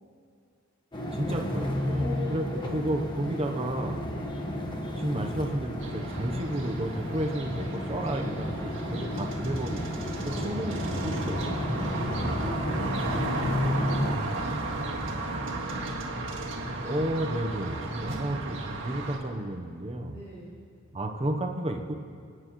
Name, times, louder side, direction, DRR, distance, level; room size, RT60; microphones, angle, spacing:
sound 1, 0.9-14.2, left 1 dB, 25° left, 1.3 m, -32 dB
voice 1, 1.1-2.4 2.7-4.1 5.0-11.9 12.2-12.4 16.8-20.2 20.9-21.9, right 1 dB, 30° right, 2 dB, 0.9 m, -32 dB
voice 2, 2.0-3.4 4.0-4.3 10.3-10.7 12.1-15.6 20.0-20.6, left 1 dB, 45° left, -8 dB, 3.0 m, -43 dB
sound 2, 5.8-19.2, right 2 dB, 70° right, 1.9 m, -34 dB
28.5 x 9.5 x 3.1 m, 2.4 s
head